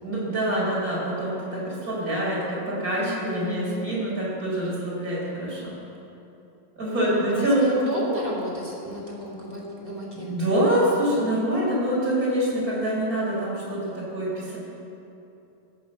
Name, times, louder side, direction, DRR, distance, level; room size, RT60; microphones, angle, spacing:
voice 1, 0.0-5.7 6.8-7.7 10.1-14.6, right 1 dB, 20° right, -6 dB, 4.7 m, -25 dB
voice 2, 3.0-3.8 7.3-10.4, equal, 10° left, -4 dB, 2.4 m, -32 dB
16.5 x 8.7 x 7.6 m, 2.9 s
omnidirectional pair, 4.3 m